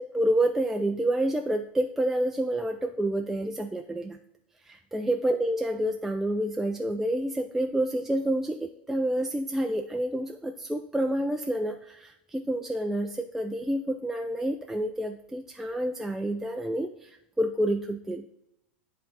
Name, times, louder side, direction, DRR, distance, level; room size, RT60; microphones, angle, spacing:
voice 1, 0.0-4.2 4.6-18.2, right 1 dB, 5° right, 3 dB, 0.3 m, -28 dB
7.9 x 3.7 x 3.9 m, 0.84 s
hypercardioid pair, 120°, 6 cm